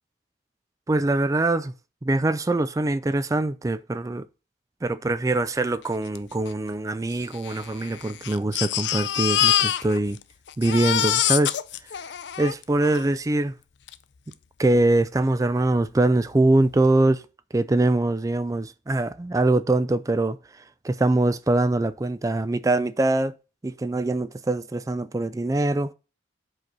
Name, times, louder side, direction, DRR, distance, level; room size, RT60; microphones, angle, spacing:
voice 1, 0.9-1.7 2.0-4.3 4.8-10.2 10.6-11.5 12.4-13.5 14.6-17.2 17.5-23.3 23.6-25.9, right 2 dB, 20° right, 0.3 m, -23 dB
Crying sobbing, 6.2-6.3 6.5-6.6 7.3-10.2 10.5-13.1 13.9-14.0 14.3-14.4, left 11 dB, 70° left, 0.5 m, -25 dB
7.8 x 4.1 x 5.9 m
head